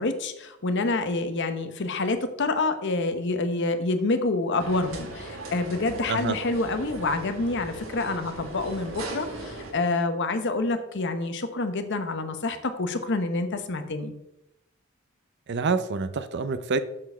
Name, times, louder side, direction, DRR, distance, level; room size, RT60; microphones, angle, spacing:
voice 1, 0.0-14.1, left 3 dB, 60° left, 9 dB, 0.9 m, -27 dB
sound 1, 4.6-9.7, right 2 dB, 80° right, 1.9 m, -38 dB
voice 2, 15.5-16.8, right 4 dB, 55° right, 12 dB, 0.6 m, -27 dB
7.5 x 4.2 x 6.7 m, 0.88 s
head